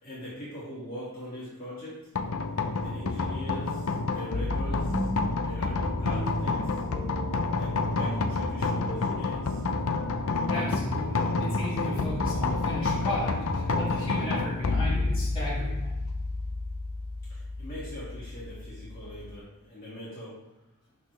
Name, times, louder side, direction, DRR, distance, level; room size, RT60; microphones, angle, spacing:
voice 1, 0.0-2.0 2.8-5.1 5.4-6.8 7.6-9.6 17.3-20.3, equal, 40° left, -9 dB, 1.9 m, -41 dB
sound 1, 2.1-19.4, left 3 dB, 70° left, 0.6 m, -29 dB
sound 2, 2.8-11.9, equal, 10° right, 1.5 m, -43 dB
voice 2, 10.5-15.9, equal, 25° left, -7 dB, 2.4 m, -35 dB
11.5 x 4.2 x 3.2 m, 0.95 s
head